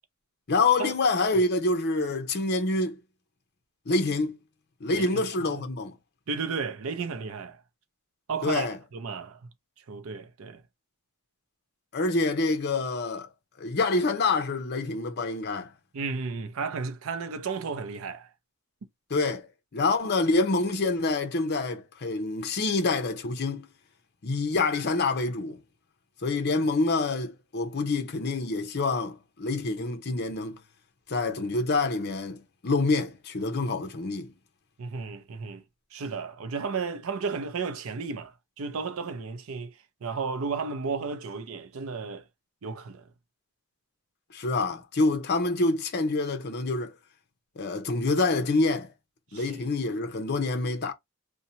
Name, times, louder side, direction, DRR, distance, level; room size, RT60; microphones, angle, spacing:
voice 1, 0.5-3.0 3.9-4.4 4.8-6.0 8.4-8.8 11.9-13.3 13.6-15.7 19.1-19.5 19.7-23.7 24.2-25.6 26.2-30.6 31.1-34.3 44.3-46.9 47.6-48.9 49.3-50.9, left 3 dB, 50° left, 0.7 m, -26 dB
voice 2, 4.9-5.6 6.3-7.6 8.3-9.4 9.9-10.6 15.9-18.3 34.8-35.6 35.9-39.7 40.0-42.2 42.6-43.1 49.3-49.7, right 5 dB, 75° right, 0.5 m, -33 dB
2.7 x 2.2 x 2.8 m
head